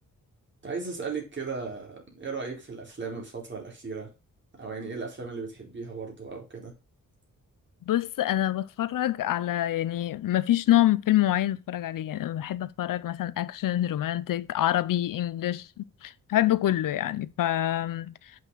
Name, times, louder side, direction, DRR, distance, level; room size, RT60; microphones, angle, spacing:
voice 1, 0.6-4.1 4.6-6.7, right 4 dB, 35° right, 4.3 m, -36 dB
voice 2, 7.9-18.3, left 13 dB, 85° left, 0.6 m, -26 dB
7.8 x 5.9 x 5.6 m
wide cardioid pair, 110°, 32 cm